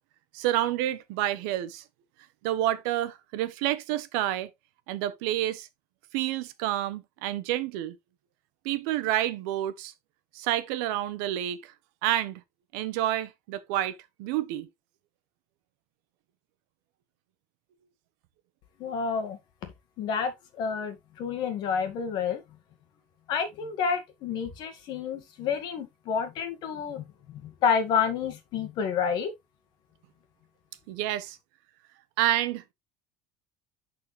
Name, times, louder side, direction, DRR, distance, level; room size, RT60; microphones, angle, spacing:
voice 1, 0.3-1.8 2.4-4.5 4.9-5.7 6.1-7.9 8.6-9.9 10.3-11.7 12.0-12.4 12.7-14.7 30.9-31.4 32.2-32.7, right 13 dB, 75° right, 1.0 m, -29 dB
voice 2, 18.8-19.4 20.0-22.4 23.3-29.3, left 6 dB, 45° left, 1.7 m, -29 dB
11.0 x 4.3 x 3.2 m
cardioid pair, 170°, 10 cm